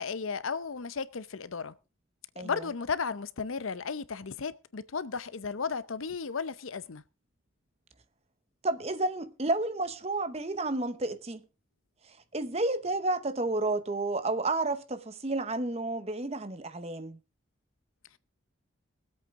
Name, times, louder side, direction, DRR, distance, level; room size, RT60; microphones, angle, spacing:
voice 1, 0.0-1.7 2.4-7.0, left 5 dB, 85° left, 0.7 m, -34 dB
voice 2, 8.6-11.4 12.3-17.2, right 2 dB, 30° right, 0.9 m, -31 dB
21.0 x 8.1 x 3.7 m
head